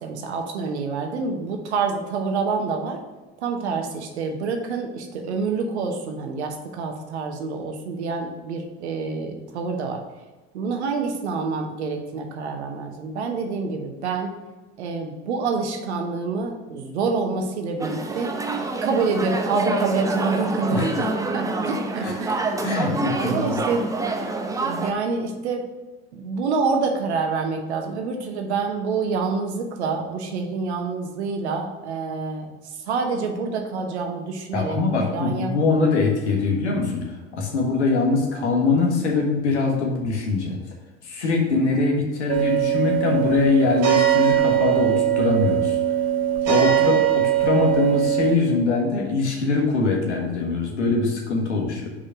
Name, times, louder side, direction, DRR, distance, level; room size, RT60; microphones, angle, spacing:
voice 1, 0.0-3.0 3.4-10.0 10.5-14.3 14.8-18.3 18.8-22.6 23.1-24.0 24.6-25.6 26.1-32.5 32.9-34.8 35.1-35.5, right 4 dB, 70° right, 4 dB, 1.1 m, -27 dB
sound 1, 17.8-24.9, right 2 dB, 10° right, 0.6 m, -27 dB
voice 2, 22.6-23.6 34.5-40.6 41.0-45.8 46.4-51.9, left 3 dB, 75° left, -1 dB, 1.5 m, -22 dB
sound 2, 42.3-48.3, right 12 dB, 45° right, 1.3 m, -21 dB
5.1 x 4.2 x 5.9 m, 1.2 s
figure-of-eight pair, 70°, 35 cm